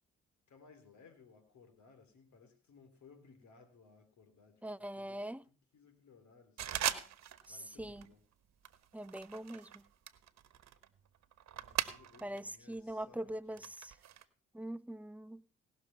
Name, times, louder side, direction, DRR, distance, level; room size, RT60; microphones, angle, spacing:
voice 1, 0.5-7.0 7.5-8.2 11.5-13.7, left 5 dB, 70° left, 3.3 m, -62 dB
voice 2, 4.6-5.4 7.5-8.1 8.9-9.8 12.2-13.9 14.5-15.4, right 1 dB, 5° right, 0.5 m, -43 dB
sound 1, 6.6-7.5 7.8-8.1 8.6-12.4 12.7-14.2, right 10 dB, 65° right, 1.1 m, -40 dB
18.0 x 6.4 x 5.5 m
supercardioid pair, 60°, 29 cm